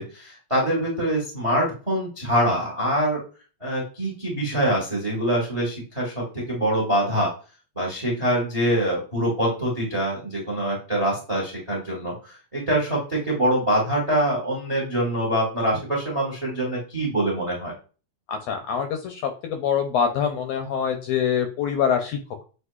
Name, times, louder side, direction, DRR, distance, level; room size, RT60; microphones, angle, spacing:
voice 1, 0.0-3.2 3.6-7.3 7.8-17.7, right 1 dB, 35° right, -2 dB, 0.5 m, -24 dB
voice 2, 18.3-22.2, left 7 dB, 80° left, 4 dB, 1.5 m, -25 dB
7.8 x 2.6 x 2.3 m, 0.35 s
omnidirectional pair, 3.3 m